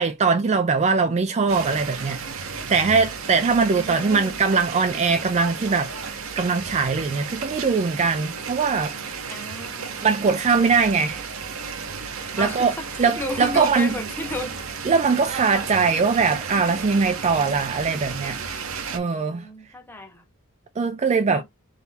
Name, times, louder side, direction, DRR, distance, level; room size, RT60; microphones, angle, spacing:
voice 1, 0.0-5.9 6.4-9.3 10.0-11.3 12.4-12.7 13.0-14.0 14.8-18.4 18.9-19.5 20.8-21.4, right 4 dB, 30° right, 0.4 m, -21 dB
sound 1, 1.5-19.0, right 5 dB, 65° right, 0.9 m, -33 dB
voice 2, 3.7-4.4 9.3-10.0 12.3-14.5 18.9-20.2 21.3-21.4, left 1 dB, 10° left, 0.9 m, -33 dB
4.0 x 2.8 x 4.1 m
head